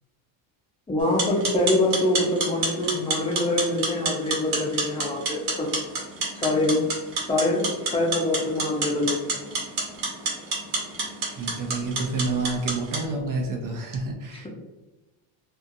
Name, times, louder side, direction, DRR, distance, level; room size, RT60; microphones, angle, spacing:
voice 1, 0.9-5.7 6.4-6.8 7.3-9.2 14.3-14.5, left 2 dB, 10° left, -2 dB, 0.5 m, -24 dB
sound 1, 1.0-13.0, right 3 dB, 85° right, 1.1 m, -30 dB
voice 2, 11.3-14.5, right 3 dB, 45° right, 2 dB, 0.5 m, -29 dB
2.7 x 2.3 x 2.6 m, 1.1 s
cardioid pair, 135°, 48 cm